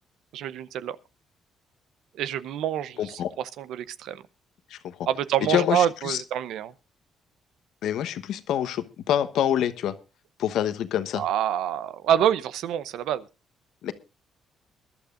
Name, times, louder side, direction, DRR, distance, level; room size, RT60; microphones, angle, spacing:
voice 1, 0.3-1.0 2.2-4.2 5.1-6.7 11.2-13.3, right 10 dB, 85° right, 0.7 m, -27 dB
voice 2, 3.0-3.3 4.7-4.8 5.5-6.2 7.8-9.9 10.4-11.2 13.8-13.9, left 10 dB, 80° left, 1.1 m, -26 dB
23.0 x 11.5 x 2.5 m
cardioid pair, 90°, 0 cm